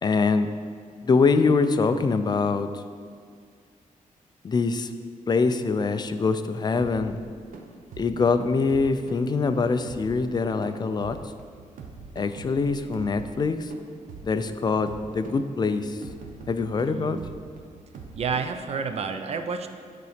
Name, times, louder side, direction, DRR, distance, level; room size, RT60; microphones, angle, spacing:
voice 1, 0.0-0.5 1.0-2.8 4.4-4.9 5.3-7.2 8.0-11.2 12.2-13.7 14.2-16.0 16.5-17.2, left 4 dB, 30° left, 9 dB, 0.4 m, -24 dB
sound 1, 6.8-19.1, right 4 dB, 75° right, 0.8 m, -45 dB
voice 2, 16.9-17.3 18.2-19.7, right 5 dB, 50° right, 7 dB, 0.5 m, -30 dB
9.8 x 3.9 x 5.0 m, 2.1 s
wide cardioid pair, 150°, 14 cm